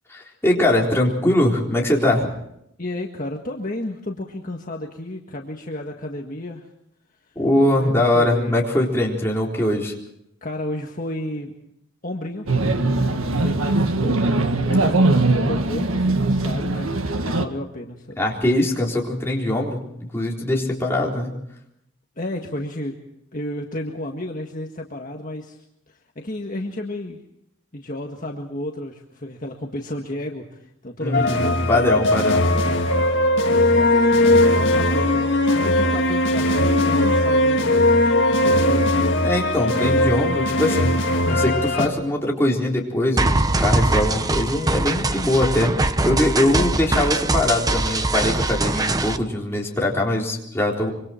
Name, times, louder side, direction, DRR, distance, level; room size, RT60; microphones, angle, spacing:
voice 1, 0.1-2.3 7.4-9.9 18.2-19.8 20.1-21.3 31.0-32.4 39.1-41.0 41.3-45.7 46.0-50.9, left 1 dB, 10° left, -2 dB, 3.9 m, -22 dB
voice 2, 2.8-6.7 7.7-8.6 10.4-11.5 12.0-12.4 13.1-15.2 15.5-18.2 22.2-22.9 23.3-27.2 27.7-32.8 33.7-34.1 34.4-37.7 38.3-39.1 46.4-46.7, left 1 dB, 40° left, 1 dB, 1.7 m, -32 dB
sound 1, 12.5-17.5, right 2 dB, 80° right, 1.7 m, -21 dB
sound 2, 31.1-41.9, left 1 dB, 55° left, 2.0 m, -19 dB
sound 3, 43.2-49.2, right 2 dB, 15° right, 0.8 m, -22 dB
25.5 x 24.5 x 4.5 m, 0.77 s
head